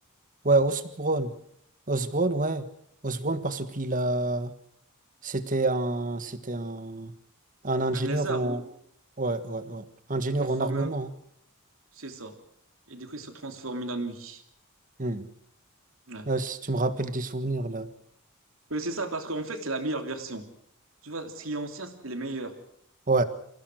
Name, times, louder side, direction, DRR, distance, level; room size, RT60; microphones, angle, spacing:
voice 1, 0.4-1.3 1.9-2.6 3.0-4.5 5.2-7.1 7.6-8.6 9.2-9.8 10.1-11.1 15.0-15.3 16.2-17.9 23.1-23.2, right 2 dB, 40° right, 12 dB, 1.5 m, -27 dB
voice 2, 7.9-8.6 10.4-10.9 11.9-12.4 12.9-14.4 16.1-16.3 18.7-20.5 21.0-22.5, right 2 dB, 70° right, 6 dB, 3.0 m, -34 dB
27.0 x 16.5 x 6.4 m, 0.68 s
head